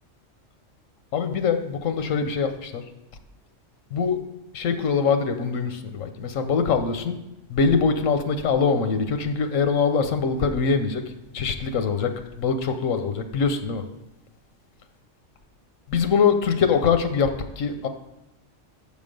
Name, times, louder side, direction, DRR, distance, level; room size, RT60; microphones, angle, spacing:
voice 1, 1.1-2.8 3.9-4.2 4.5-7.2 7.5-11.0 11.3-12.1 12.4-13.8 15.9-17.9, left 5 dB, 85° left, 8 dB, 1.1 m, -23 dB
7.0 x 5.2 x 5.2 m, 0.92 s
omnidirectional pair, 1.3 m